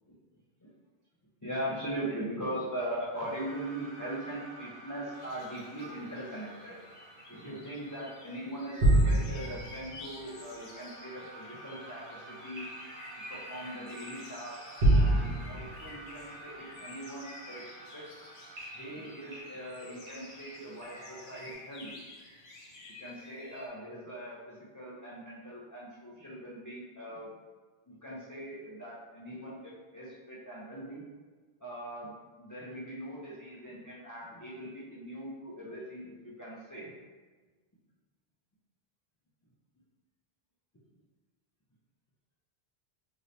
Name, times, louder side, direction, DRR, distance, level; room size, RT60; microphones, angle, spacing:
voice 1, 1.4-6.8 7.3-12.7 13.3-14.6 14.9-18.1 18.7-22.0 23.0-27.3 27.9-31.1 31.6-36.9, right 1 dB, 30° left, -8 dB, 0.4 m, -41 dB
sound 1, 3.1-21.5, right 1 dB, 75° right, 1.1 m, -34 dB
sound 2, 5.1-23.7, left 2 dB, 60° left, 0.7 m, -51 dB
2.8 x 2.6 x 3.2 m, 1.4 s
omnidirectional pair, 1.1 m